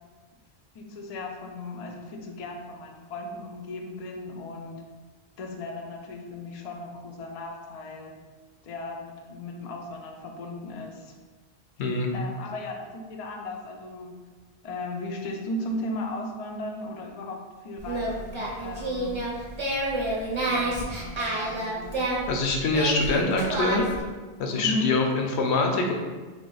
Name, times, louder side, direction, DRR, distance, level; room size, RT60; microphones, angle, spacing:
voice 1, 0.7-4.8 5.4-8.2 8.6-11.1 12.1-14.3 14.6-19.3 20.5-22.2 24.5-24.9, left 2 dB, 55° left, 2 dB, 0.4 m, -36 dB
voice 2, 11.8-12.1 20.8-20.9 22.3-23.9 24.4-25.9, left 3 dB, 80° left, 2 dB, 0.9 m, -24 dB
Singing, 17.8-24.0, right 1 dB, 30° right, 0.6 m, -29 dB
3.5 x 2.4 x 3.8 m, 1.3 s
omnidirectional pair, 1.1 m